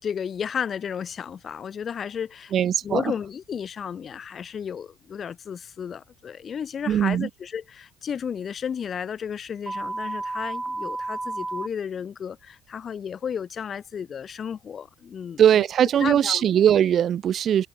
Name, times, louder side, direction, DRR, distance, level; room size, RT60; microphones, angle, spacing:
voice 1, 0.0-2.5 2.8-15.6 16.0-16.5, left 7 dB, 45° left, 3.0 m, -33 dB
voice 2, 2.5-3.0 6.9-7.3 15.4-17.7, right 9 dB, 50° right, 0.4 m, -20 dB
sound 1, 9.7-11.7, right 2 dB, 15° right, 4.4 m, -31 dB
supercardioid pair, 75°, 0 cm